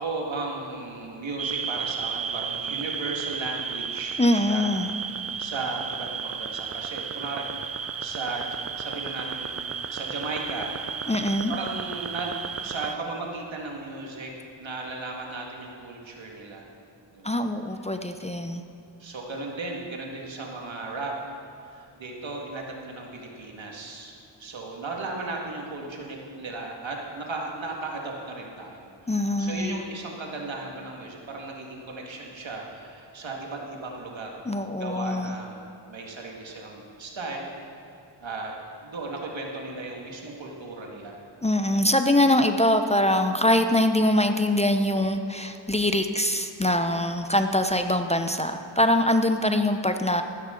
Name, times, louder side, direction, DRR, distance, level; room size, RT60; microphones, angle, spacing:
voice 1, 0.0-4.7 5.4-7.5 8.0-9.6 9.9-11.1 11.5-14.3 14.6-16.7 17.1-17.4 19.0-21.4 21.6-24.1 24.4-29.1 29.4-34.3 34.8-37.5 38.2-38.5 38.8-41.2, right 3 dB, 80° right, -1 dB, 2.1 m, -35 dB
sound 1, 1.4-13.0, right 6 dB, 35° right, 0.4 m, -33 dB
voice 2, 4.2-4.9 11.1-11.5 17.2-18.6 29.1-29.8 34.5-35.4 41.4-50.2, left 1 dB, 15° left, 7 dB, 0.6 m, -23 dB
14.5 x 12.5 x 3.9 m, 2.8 s
wide cardioid pair, 70°, 46 cm